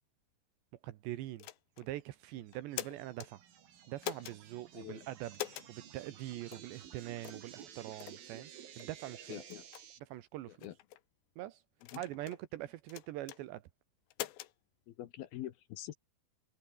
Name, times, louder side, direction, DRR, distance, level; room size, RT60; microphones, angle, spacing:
voice 1, 0.8-1.5 1.8-3.4 3.9-9.4 10.1-10.7 11.4-11.6 11.9-13.7, right 15 dB, 80° right, 3.4 m, -43 dB
sound 1, 1.4-1.9 2.5-3.3 4.0-4.4 5.3-5.7 6.5-6.7 7.2-7.5 8.0-8.2 8.8-8.9 9.5-9.8 10.6-11.0 11.8-12.4 12.9-13.4 14.1-14.5, left 15 dB, 85° left, 3.5 m, -43 dB
sound 2, 2.3-10.0, right 9 dB, 60° right, 3.9 m, -54 dB
voice 2, 4.7-5.1 9.3-9.7 10.5-10.8 11.9-12.0 14.9-15.9, left 13 dB, 70° left, 2.8 m, -45 dB
omnidirectional pair, 5.0 m